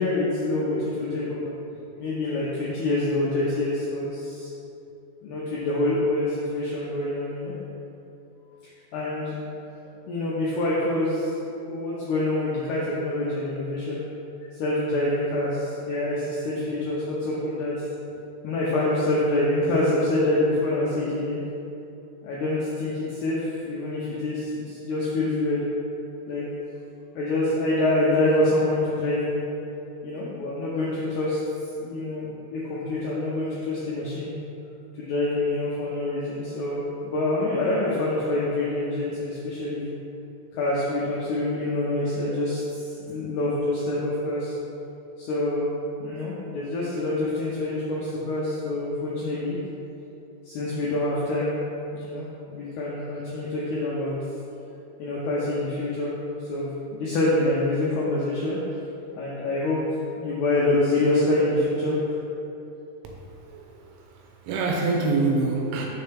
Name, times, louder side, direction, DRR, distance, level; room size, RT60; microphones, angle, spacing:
voice 1, 0.0-1.5 2.0-4.5 5.2-7.5 8.9-9.4 10.1-11.3 11.7-14.0 14.5-17.9 18.4-21.4 22.2-25.6 26.3-26.4 27.2-29.4 30.0-31.4 31.8-34.3 34.9-39.9 40.5-44.6 45.2-45.7 46.0-49.6 50.5-51.6 51.9-54.1 55.0-56.1 56.5-58.6 59.2-59.8 60.2-62.2, left 2 dB, 80° left, -7 dB, 2.3 m, -26 dB
voice 2, 63.3-65.9, right 3 dB, 85° right, 0 dB, 2.9 m, -26 dB
6.8 x 6.7 x 3.5 m, 2.8 s
omnidirectional pair, 5.8 m